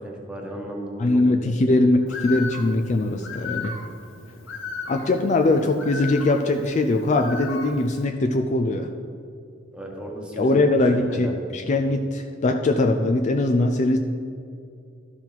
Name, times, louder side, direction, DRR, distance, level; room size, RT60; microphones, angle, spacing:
voice 1, 0.0-1.5 9.7-10.6 10.9-11.3, right 1 dB, 5° right, -1 dB, 1.3 m, -35 dB
voice 2, 1.0-3.7 4.9-8.9 10.4-14.0, left 2 dB, 35° left, 5 dB, 0.4 m, -21 dB
Bird, 2.1-8.0, left 4 dB, 75° left, 1.1 m, -36 dB
12.0 x 5.6 x 4.5 m, 2.4 s
head